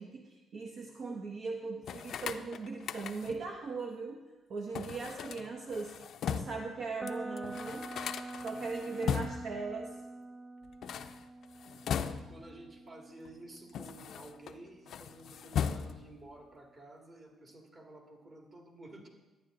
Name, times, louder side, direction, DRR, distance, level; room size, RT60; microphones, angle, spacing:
voice 1, 0.0-4.2 4.5-5.9 6.3-7.9 8.4-9.9, right 4 dB, 60° right, 2 dB, 0.8 m, -39 dB
sound 1, 1.8-3.5 4.7-6.7 7.1-7.2 7.4-9.6 10.7-12.5 13.3-14.5 14.9-16.2, left 7 dB, 70° left, 0.4 m, -38 dB
sound 2, 7.0-14.9, right 2 dB, 15° right, 0.5 m, -46 dB
voice 2, 8.8-9.1 12.1-19.1, right 2 dB, 40° right, 2 dB, 2.0 m, -52 dB
11.5 x 9.2 x 3.8 m, 1.1 s
cardioid pair, 90°, 0 cm